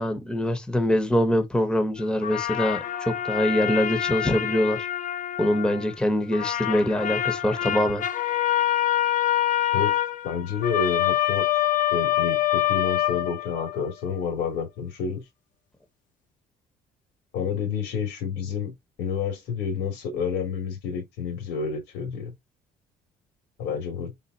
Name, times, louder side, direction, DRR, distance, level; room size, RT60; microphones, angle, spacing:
voice 1, 0.0-4.9 5.4-8.0, equal, 5° left, 0.9 m, -24 dB
sound 1, 2.2-6.0 6.3-13.9, left 12 dB, 50° left, 0.8 m, -26 dB
voice 2, 10.2-11.5 11.9-15.2 17.3-18.7 19.0-22.3 23.6-24.1, left 6 dB, 85° left, 2.5 m, -29 dB
4.0 x 3.8 x 2.7 m
cardioid pair, 110°, 17 cm